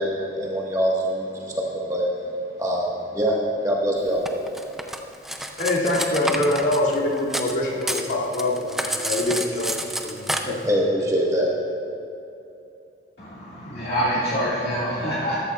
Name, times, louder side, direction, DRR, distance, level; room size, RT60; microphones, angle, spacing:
voice 1, 0.0-2.1 2.6-3.3 3.6-4.2 10.3-11.5, equal, 20° right, -3 dB, 1.4 m, -24 dB
Cutlery silverware, 4.2-7.5 7.8-10.4, right 1 dB, ahead, 0.4 m, -29 dB
voice 2, 5.6-9.7 10.0-10.6, left 1 dB, 90° left, -6 dB, 2.4 m, -24 dB
voice 3, 13.2-15.4, equal, 60° left, -9 dB, 2.0 m, -26 dB
14.0 x 13.0 x 2.4 m, 2.8 s
head